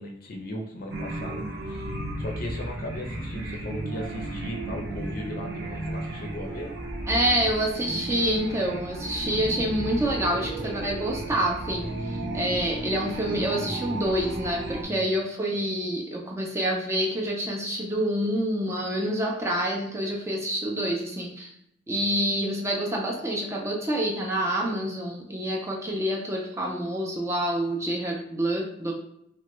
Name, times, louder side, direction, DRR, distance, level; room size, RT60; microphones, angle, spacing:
voice 1, 0.0-1.9 2.2-6.7 14.8-15.1, left 1 dB, 50° left, 1 dB, 0.5 m, -37 dB
sound 1, 0.9-14.8, right 2 dB, 60° right, 0.6 m, -34 dB
voice 2, 7.1-21.5 21.9-28.9, right 1 dB, 15° right, -1 dB, 0.4 m, -27 dB
3.0 x 2.2 x 3.0 m, 0.79 s
head